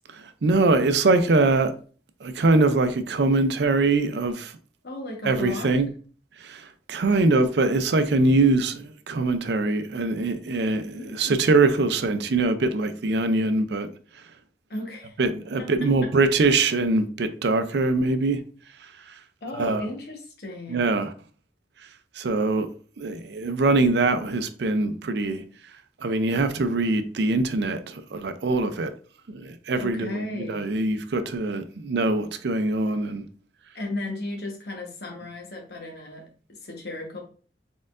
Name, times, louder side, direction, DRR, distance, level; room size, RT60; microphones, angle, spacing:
voice 1, 0.1-1.7 2.2-4.5 5.2-5.9 6.4-13.9 15.2-18.4 19.5-19.9 20.7-21.1 22.2-22.7 23.0-25.4 26.0-28.9 29.3-33.2, right 3 dB, 70° right, 0.5 m, -23 dB
voice 2, 4.8-5.7 10.9-11.5 14.7-15.2 15.6-15.7 16.0-16.1 19.4-21.0 29.8-30.7 33.7-37.2, left 2 dB, 65° left, 1.2 m, -35 dB
4.2 x 3.8 x 2.5 m
head